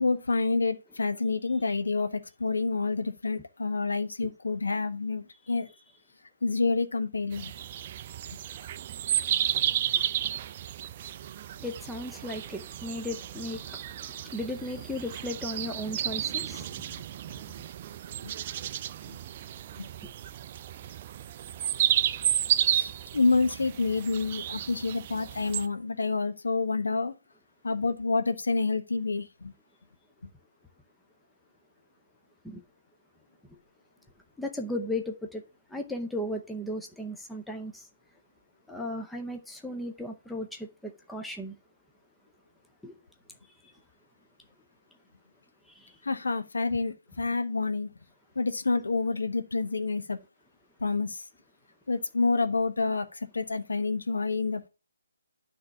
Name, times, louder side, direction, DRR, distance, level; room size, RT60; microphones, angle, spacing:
voice 1, 0.0-5.7 6.4-7.5 18.2-18.3 19.1-19.2 19.8-19.9 22.7-27.1 27.6-29.5 46.0-47.9 48.3-50.2 50.8-51.2 51.9-54.7, left 3 dB, 70° left, 1.1 m, -28 dB
sound 1, 7.3-25.7, right 11 dB, 35° right, 0.4 m, -32 dB
voice 2, 11.6-17.0 32.4-32.6 34.4-35.4 35.7-37.9 38.7-41.6 42.8-42.9 45.7-46.0, left 1 dB, 5° left, 0.7 m, -36 dB
9.7 x 3.4 x 6.8 m
figure-of-eight pair, 145°, 0 cm